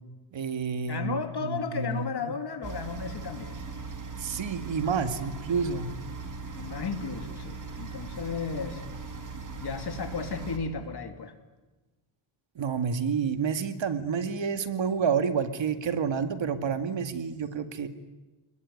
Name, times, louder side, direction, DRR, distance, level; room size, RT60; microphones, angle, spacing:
voice 1, 0.3-2.4 4.2-5.9 12.6-17.9, right 6 dB, 65° right, 8 dB, 2.2 m, -29 dB
voice 2, 0.9-3.6 6.5-8.8 9.6-11.3, left 5 dB, 50° left, 6 dB, 3.1 m, -34 dB
sound 1, 2.6-10.6, right 4 dB, 40° right, 3.4 m, -39 dB
29.0 x 21.0 x 9.6 m, 1.2 s
wide cardioid pair, 115°, 48 cm